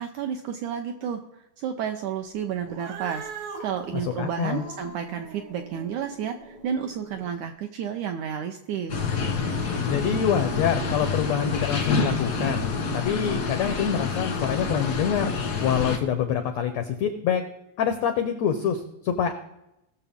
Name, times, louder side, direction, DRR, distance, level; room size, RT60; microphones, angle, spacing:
voice 1, 0.0-9.1, right 8 dB, 80° right, 5 dB, 1.7 m, -31 dB
Cat, 2.7-7.3, right 4 dB, 65° right, 2.2 m, -41 dB
voice 2, 4.2-4.7 9.8-12.7 12.9-15.3 15.6-17.4 17.8-19.3, left 8 dB, 85° left, 7 dB, 1.5 m, -26 dB
sound 1, 8.9-16.0, left 4 dB, 60° left, 1.0 m, -27 dB
19.0 x 6.9 x 3.6 m, 0.88 s
omnidirectional pair, 4.1 m